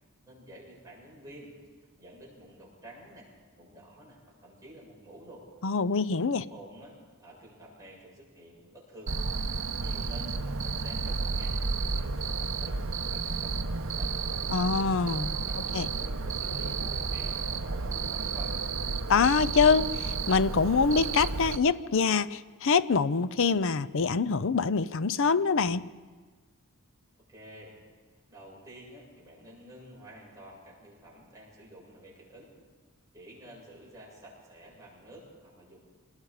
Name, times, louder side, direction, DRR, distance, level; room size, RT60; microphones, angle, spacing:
voice 1, 0.3-1.5 2.0-3.3 3.6-5.5 6.5-9.1 9.8-14.1 15.4-18.6 27.3-27.8 28.3-32.5 33.1-35.8, right 1 dB, 15° right, -5 dB, 7.7 m, -50 dB
voice 2, 5.6-6.4 14.5-15.3 15.7-15.9 19.1-25.9, left 5 dB, 60° left, 16 dB, 0.6 m, -25 dB
Cricket, 9.1-21.6, right 4 dB, 60° right, 0.9 m, -32 dB
26.5 x 20.0 x 5.0 m, 1.4 s
head